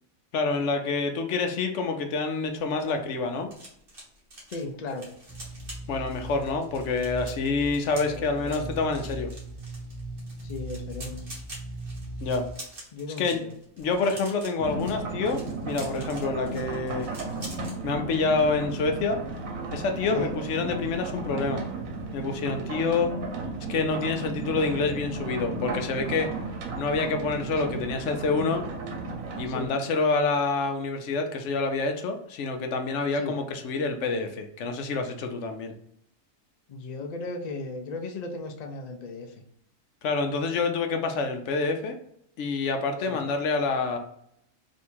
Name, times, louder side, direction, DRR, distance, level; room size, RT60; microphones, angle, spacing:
voice 1, 0.3-3.5 5.9-9.3 12.2-12.4 13.2-13.4 13.8-17.1 17.8-19.2 19.7-21.6 22.1-23.1 23.7-26.3 26.8-28.6 29.4-35.7 40.0-42.0 42.4-44.0, left 4 dB, 70° left, 5 dB, 0.9 m, -27 dB
sound 1, 2.6-17.8 18.1-18.4 18.6-18.9, right 1 dB, 45° right, 1.6 m, -46 dB
voice 2, 4.5-5.1 8.1-8.7 10.4-11.2 12.9-13.5 16.3-16.5 20.1-20.4 24.8-25.0 27.6-27.8 29.5-29.7 33.1-33.4 36.7-39.4 43.1-43.2, left 3 dB, 50° left, 4 dB, 0.5 m, -36 dB
sound 2, 5.3-12.5, right 2 dB, 25° right, 0.5 m, -39 dB
sound 3, 14.6-29.7, right 3 dB, 90° right, 1.2 m, -34 dB
3.5 x 2.7 x 4.4 m, 0.72 s
omnidirectional pair, 1.4 m